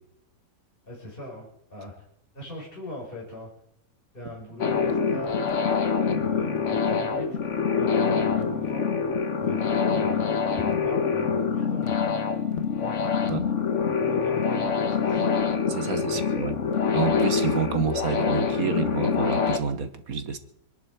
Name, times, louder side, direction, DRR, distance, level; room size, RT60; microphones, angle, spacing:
voice 1, 0.8-1.9 2.3-3.5 4.1-7.4 7.7-8.9 9.4-10.3 10.6-12.0 12.8-13.4 13.9-15.2 16.0-16.2, equal, 25° left, -2 dB, 5.0 m, -39 dB
sound 1, 4.6-19.6, left 6 dB, 45° left, 1.3 m, -25 dB
voice 2, 15.7-16.5 16.9-20.4, right 6 dB, 55° right, 9 dB, 1.6 m, -29 dB
25.5 x 11.5 x 4.7 m, 0.73 s
omnidirectional pair, 2.0 m